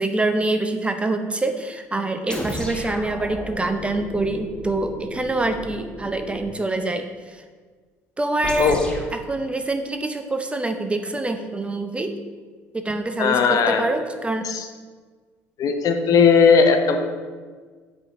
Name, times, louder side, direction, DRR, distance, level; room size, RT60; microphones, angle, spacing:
voice 1, 0.0-7.4 8.2-12.2 12.7-14.5, right 2 dB, 15° right, 6 dB, 0.5 m, -25 dB
sound 1, 2.3-6.6 8.4-9.1, equal, 10° left, 1.3 m, -34 dB
voice 2, 8.6-8.9 13.2-13.8 14.4-14.7 15.6-17.0, left 5 dB, 50° left, 6 dB, 0.7 m, -17 dB
8.5 x 4.4 x 2.6 m, 1.5 s
hypercardioid pair, 60°, 8 cm